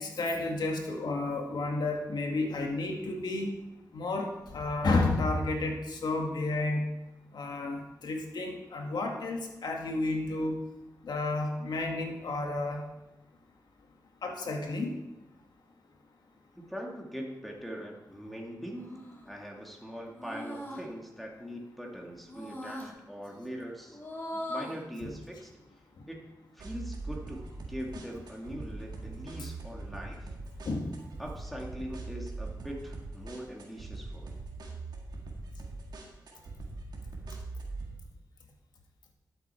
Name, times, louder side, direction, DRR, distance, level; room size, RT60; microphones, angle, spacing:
voice 1, 0.0-3.5 3.9-6.9 7.3-10.6 11.0-12.8 14.2-14.9 25.0-25.1 30.7-31.0, left 2 dB, 85° left, 1 dB, 1.9 m, -31 dB
voice 2, 16.5-19.0 19.2-24.0 24.5-25.5 26.1-26.3 26.5-30.3 31.2-34.4, equal, ahead, -1 dB, 2.2 m, -42 dB
sound 1, 18.8-19.3 20.1-20.8 22.3-22.9 23.9-24.8, left 1 dB, 30° left, 2.8 m, -40 dB
sound 2, 26.6-37.9, right 3 dB, 90° right, 1.8 m, -42 dB
12.5 x 8.0 x 4.5 m, 0.99 s
cardioid pair, 65°, 7 cm